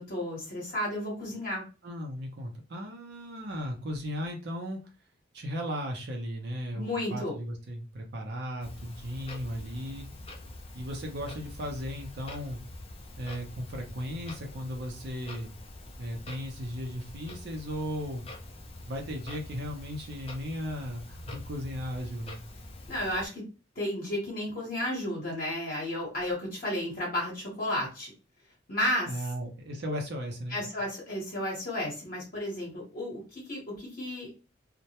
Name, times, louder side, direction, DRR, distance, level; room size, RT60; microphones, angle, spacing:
voice 1, 0.0-1.6 6.7-7.3 22.9-23.4 23.8-28.1 28.7-29.1 30.5-34.3, left 1 dB, 45° left, -4 dB, 0.9 m, -33 dB
voice 2, 1.8-4.8 5.3-10.1 10.7-12.6 13.2-15.5 16.0-18.2 18.9-22.4 29.1-30.6, equal, 55° right, 2 dB, 0.5 m, -36 dB
Clock, 8.6-23.3, left 2 dB, 30° left, 0.4 m, -45 dB
2.1 x 2.1 x 2.8 m, 0.32 s
head